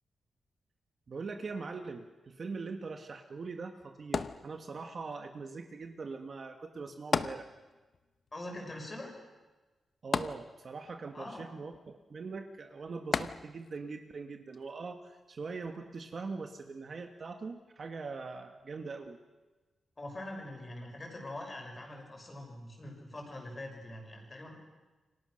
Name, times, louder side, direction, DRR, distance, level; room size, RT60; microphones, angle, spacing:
voice 1, 1.1-7.5 10.0-19.2, right 4 dB, 40° right, 5 dB, 1.5 m, -42 dB
sound 1, 4.1-5.0 7.1-8.0 8.3-8.4 10.1-11.0 13.1-13.8 14.5-14.6, left 5 dB, 40° left, 0.8 m, -34 dB
voice 2, 8.3-9.1 11.1-11.5 20.0-24.6, left 1 dB, 20° left, 1 dB, 6.1 m, -43 dB
28.5 x 25.0 x 6.5 m, 1.2 s
wide cardioid pair, 180°, 0 cm